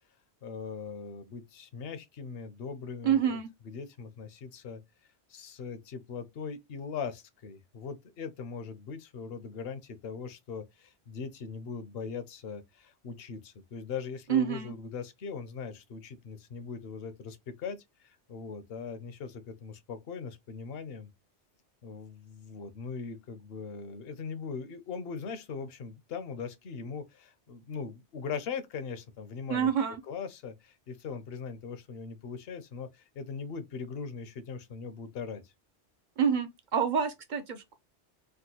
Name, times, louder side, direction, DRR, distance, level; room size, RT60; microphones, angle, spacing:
voice 1, 0.4-3.4 3.6-4.8 5.3-21.1 21.8-29.7 30.1-35.5, left 5 dB, 60° left, 0.8 m, -40 dB
voice 2, 3.0-3.5 14.3-14.7 29.5-30.0 36.2-37.7, right 8 dB, 55° right, 0.6 m, -27 dB
3.5 x 2.2 x 2.7 m
omnidirectional pair, 1.2 m